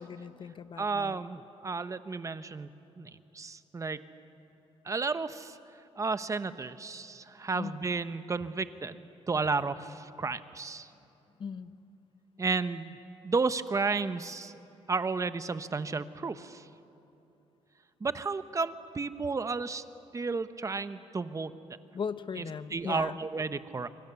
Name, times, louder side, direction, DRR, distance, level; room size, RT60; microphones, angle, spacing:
voice 1, 0.0-1.2 7.5-7.8 11.4-11.7 21.9-23.2, left 6 dB, 45° left, 12 dB, 1.0 m, -38 dB
voice 2, 0.8-2.7 3.0-4.1 4.8-5.6 6.0-9.0 9.3-10.9 12.4-13.0 13.2-14.6 14.9-16.7 18.0-19.8 20.1-21.8 22.4-23.9, right 4 dB, 30° right, 12 dB, 1.0 m, -32 dB
26.5 x 24.0 x 7.0 m, 2.9 s
cardioid pair, 90°, 11 cm